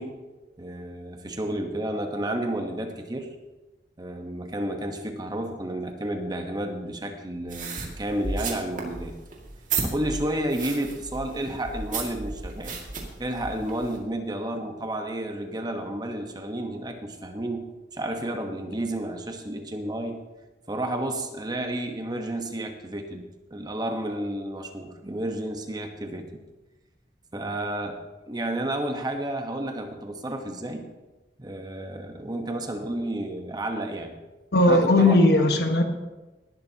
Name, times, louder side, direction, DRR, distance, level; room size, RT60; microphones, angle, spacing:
voice 1, 0.0-3.3 4.0-9.1 9.8-12.8 13.2-20.2 20.7-26.2 27.3-28.0 28.3-30.9 31.4-34.2 34.7-35.2, right 1 dB, 25° right, 4 dB, 1.2 m, -31 dB
sound 1, 7.5-14.0, right 4 dB, 45° right, 2.3 m, -34 dB
voice 2, 34.5-35.8, left 2 dB, 65° left, 5 dB, 1.4 m, -18 dB
19.0 x 11.5 x 2.9 m, 1.1 s
head